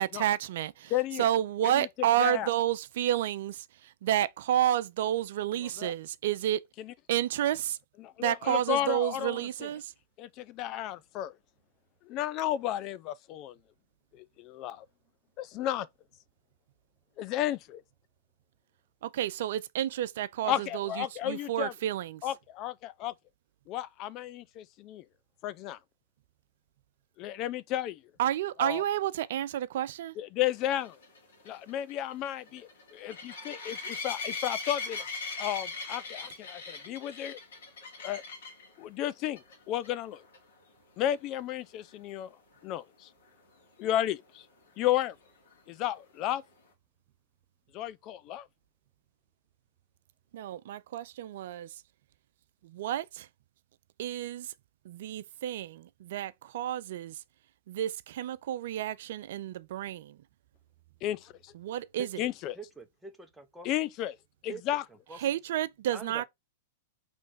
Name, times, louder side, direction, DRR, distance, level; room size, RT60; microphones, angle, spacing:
voice 1, 0.0-0.9 1.2-6.6 7.1-7.8 8.2-9.9 19.0-22.2 28.2-30.1 50.3-51.7 52.6-53.3 54.0-54.5 54.9-57.2 57.7-60.2 61.6-62.3 65.2-66.3, right 12 dB, 65° right, 0.3 m, -30 dB
voice 2, 0.9-1.3 1.6-1.9 2.2-2.5 5.8-5.9 6.8-6.9 8.0-9.7 10.2-11.3 12.1-13.5 14.1-14.8 15.4-15.9 17.2-17.8 20.4-21.7 22.2-23.1 23.7-25.0 25.4-25.8 27.2-28.0 28.6-28.8 30.2-31.0 31.5-32.6 32.9-35.0 35.4-37.4 38.0-38.2 38.8-40.2 41.0-42.3 42.6-43.1 43.8-44.5 44.8-45.1 45.7-46.4 47.7-48.5 61.0-61.5 62.2-62.5 63.6-64.2 64.4-64.8, left 12 dB, 40° left, 0.4 m, -33 dB
sound 1, 30.7-38.7 39.2-39.6 39.8-39.9 40.3-40.4 44.0-44.1, left 3 dB, 80° left, 2.3 m, -39 dB
voice 3, 62.0-62.3 62.5-63.7 64.5-64.6 65.1-65.2 65.9-66.3, right 4 dB, 5° right, 0.9 m, -44 dB
4.3 x 3.1 x 3.8 m
hypercardioid pair, 115°, 0 cm